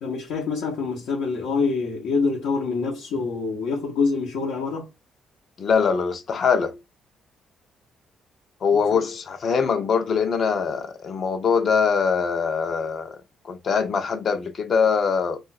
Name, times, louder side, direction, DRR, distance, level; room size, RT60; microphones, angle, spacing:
voice 1, 0.0-4.9 8.9-9.0, left 4 dB, 85° left, 1.1 m, -26 dB
voice 2, 5.6-6.8 8.6-13.2 13.4-15.4, left 6 dB, 55° left, 0.8 m, -22 dB
2.6 x 2.4 x 4.1 m
cardioid pair, 90°, 0 cm